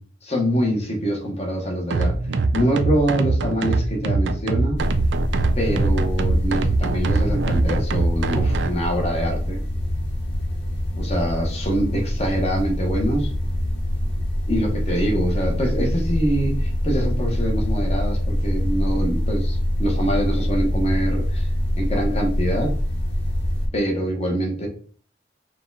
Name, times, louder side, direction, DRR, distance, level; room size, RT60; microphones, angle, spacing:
voice 1, 0.3-2.1 2.5-4.8 5.6-9.6 11.0-13.3 14.5-21.5 21.8-22.7 23.7-24.7, equal, 35° left, 0 dB, 1.2 m, -24 dB
sound 1, 1.9-8.7, right 3 dB, 80° right, 0.4 m, -22 dB
sound 2, 4.8-23.7, left 1 dB, 80° left, 1.2 m, -24 dB
4.6 x 2.4 x 3.9 m, 0.43 s
head